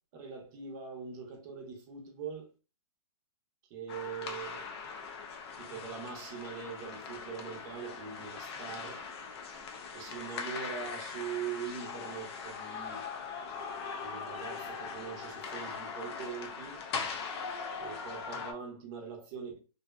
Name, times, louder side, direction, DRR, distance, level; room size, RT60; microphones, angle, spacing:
voice 1, 0.1-2.5 3.7-4.7 5.6-9.1 9.9-13.1 14.0-16.8 17.8-19.6, right 6 dB, 35° right, 0.7 m, -42 dB
Ice hockey game, 3.9-18.5, left 5 dB, 45° left, 0.5 m, -41 dB
2.6 x 2.0 x 2.3 m
hypercardioid pair, 135°, 18 cm